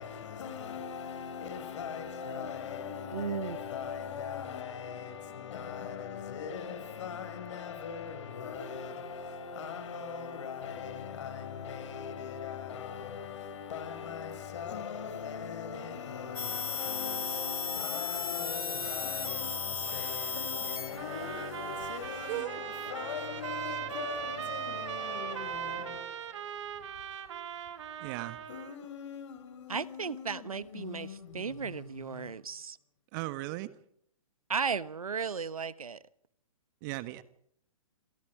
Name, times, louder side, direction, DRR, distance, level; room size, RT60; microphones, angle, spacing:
voice 1, 0.0-26.1 28.5-32.3, left 6 dB, 55° left, 6.2 m, -40 dB
voice 2, 3.1-3.6 29.7-32.8 34.5-36.0, right 6 dB, 80° right, 1.2 m, -35 dB
sound 1, 16.4-22.4, left 5 dB, 85° left, 2.9 m, -36 dB
sound 2, 21.0-28.8, right 9 dB, 55° right, 2.5 m, -39 dB
voice 3, 28.0-28.4 33.1-33.7 36.8-37.2, right 20 dB, 35° right, 1.4 m, -36 dB
28.0 x 27.0 x 5.0 m
figure-of-eight pair, 125°, 18 cm